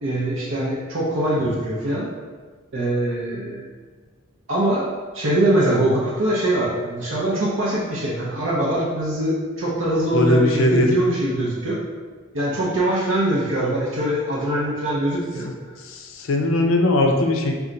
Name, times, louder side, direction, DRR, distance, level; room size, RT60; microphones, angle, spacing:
voice 1, 0.0-2.1 2.7-3.7 4.5-4.9 5.1-11.8 12.3-15.5, right 1 dB, 65° right, -6 dB, 0.7 m, -22 dB
voice 2, 10.1-10.9 15.8-17.6, left 1 dB, 65° left, 3 dB, 0.5 m, -19 dB
4.2 x 2.3 x 3.8 m, 1.5 s
head